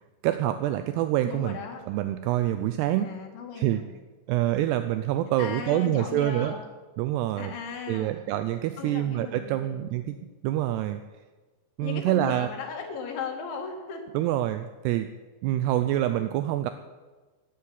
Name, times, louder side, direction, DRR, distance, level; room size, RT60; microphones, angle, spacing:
voice 1, 0.2-1.6 1.9-3.2 3.6-3.8 4.3-6.5 7.0-7.5 7.9-10.2 10.4-11.0 11.8-12.5 14.1-15.1 15.4-16.7, right 13 dB, 85° right, 10 dB, 2.4 m, -26 dB
voice 2, 1.2-1.8 3.0-3.8 5.4-6.7 7.4-8.2 8.8-9.9 11.8-14.1, left 5 dB, 80° left, 3 dB, 4.4 m, -37 dB
17.0 x 8.4 x 9.4 m, 1.3 s
omnidirectional pair, 5.3 m